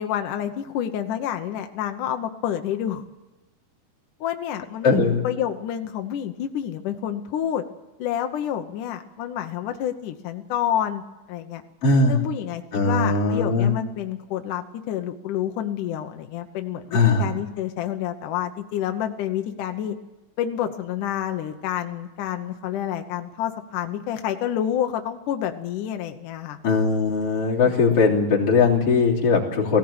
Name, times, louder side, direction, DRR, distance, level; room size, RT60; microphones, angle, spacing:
voice 1, 0.0-3.0 4.2-5.0 5.2-7.6 8.0-11.0 11.3-11.6 12.1-20.0 20.4-26.6 27.6-27.7, left 10 dB, 70° left, 6 dB, 2.2 m, -28 dB
voice 2, 4.8-5.2 11.8-12.2 12.7-13.7 16.9-17.3 26.6-29.8, left 4 dB, 40° left, -4 dB, 4.0 m, -19 dB
19.0 x 16.5 x 8.8 m, 1.0 s
omnidirectional pair, 4.3 m